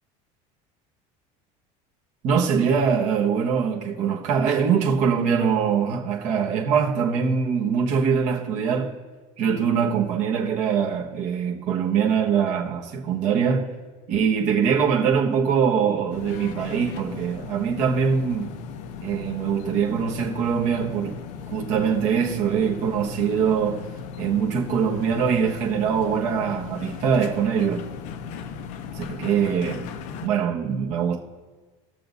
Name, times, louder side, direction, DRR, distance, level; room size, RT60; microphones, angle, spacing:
voice 1, 2.2-9.0 9.4-13.8 14.1-18.6 19.0-21.2 21.5-23.9 24.2-27.9 29.0-29.9 30.2-31.2, right 7 dB, 45° right, 1.4 m, -23 dB
sound 1, 16.1-30.3, left 6 dB, 50° left, 0.6 m, -37 dB
20.0 x 6.8 x 2.7 m
cardioid pair, 170°, 16 cm